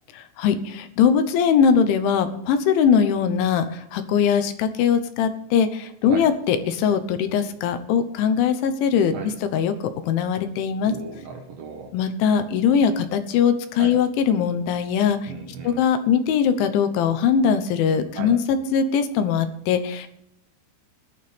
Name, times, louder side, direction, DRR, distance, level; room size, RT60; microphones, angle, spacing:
voice 1, 0.4-9.1 9.4-9.7 10.1-10.9 11.9-15.3 15.6-20.1, left 7 dB, 75° left, 8 dB, 3.2 m, -21 dB
voice 2, 10.8-11.9 13.7-14.0 15.3-15.8 18.1-18.4, right 5 dB, 65° right, 3 dB, 2.4 m, -36 dB
18.0 x 11.5 x 3.4 m, 0.78 s
omnidirectional pair, 5.7 m